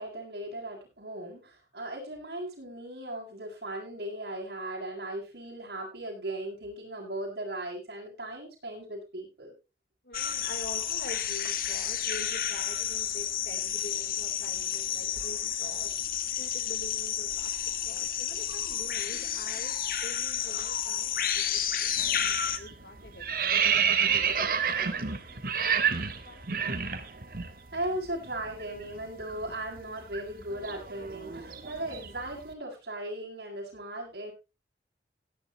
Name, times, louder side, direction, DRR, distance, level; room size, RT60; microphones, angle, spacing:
voice 1, 0.0-9.5 27.7-34.3, right 1 dB, 75° right, 0 dB, 7.8 m, -37 dB
voice 2, 10.0-15.9 16.4-19.8 20.0-23.6 24.0-26.5, left 1 dB, 75° left, 5 dB, 4.3 m, -46 dB
sound 1, 10.1-22.6, left 9 dB, 50° left, 1.4 m, -31 dB
sound 2, 22.0-22.3 22.6-27.5 27.8-28.0 28.3-32.3, right 7 dB, 55° right, 1.6 m, -29 dB
17.0 x 11.0 x 3.2 m, 0.28 s
head